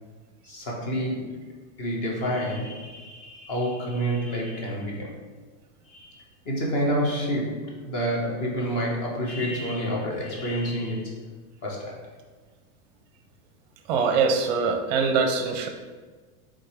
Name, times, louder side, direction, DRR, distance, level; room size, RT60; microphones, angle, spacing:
voice 1, 0.4-1.5 1.8-5.2 5.9-11.2 11.6-12.1, equal, 40° left, -2 dB, 1.5 m, -29 dB
voice 2, 13.9-15.7, right 5 dB, 30° right, 5 dB, 0.6 m, -23 dB
8.2 x 3.7 x 3.4 m, 1.4 s
supercardioid pair, 175°, 43 cm